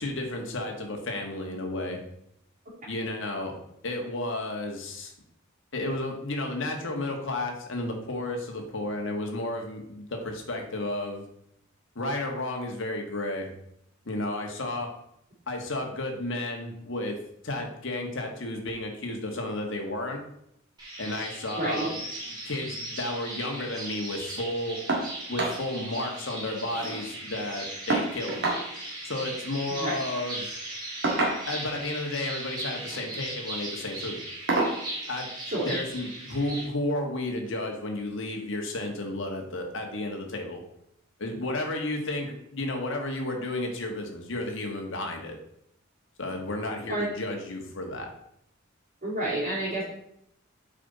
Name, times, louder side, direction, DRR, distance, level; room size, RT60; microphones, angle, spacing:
voice 1, 0.0-2.0 2.9-3.5 3.8-5.1 5.7-11.2 11.9-13.5 14.0-14.9 15.5-17.2 17.4-20.2 21.0-21.9 22.3-24.8 25.3-28.4 29.0-30.5 31.5-34.2 35.1-35.3 35.6-40.6 41.2-45.4 46.2-48.1, left 2 dB, 65° left, 2 dB, 1.5 m, -32 dB
sound 1, 20.8-36.6, right 1 dB, 20° right, 2.5 m, -38 dB
voice 2, 21.6-21.9 29.8-29.9 35.5-35.7 46.9-47.1 49.0-49.8, right 1 dB, 40° right, -11 dB, 3.2 m, -29 dB
sound 2, 24.9-25.1 25.4-25.6 26.0-26.1 26.3-27.0 27.9-28.6 29.9-30.1 31.0-31.7 32.7-33.0 33.5-33.7 34.5-34.8 36.1-36.2 36.7-36.8, right 2 dB, 60° right, 1.8 m, -28 dB
7.4 x 5.3 x 4.1 m, 0.74 s
head